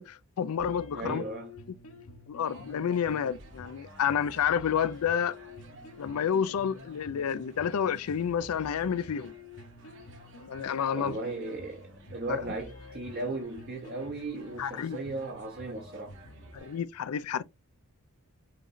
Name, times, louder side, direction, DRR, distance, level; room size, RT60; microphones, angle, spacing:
voice 1, 0.0-1.2 2.3-5.4 6.0-9.3 10.5-11.2 12.3-12.4 14.6-15.0 16.5-17.4, left 8 dB, 85° left, 0.4 m, -29 dB
sound 1, 0.6-16.6, left 2 dB, 70° left, 0.9 m, -50 dB
voice 2, 0.9-1.5 10.9-16.1, right 2 dB, 45° right, 0.8 m, -36 dB
sound 2, 2.4-16.8, right 2 dB, 60° right, 1.5 m, -54 dB
5.8 x 3.1 x 2.5 m
head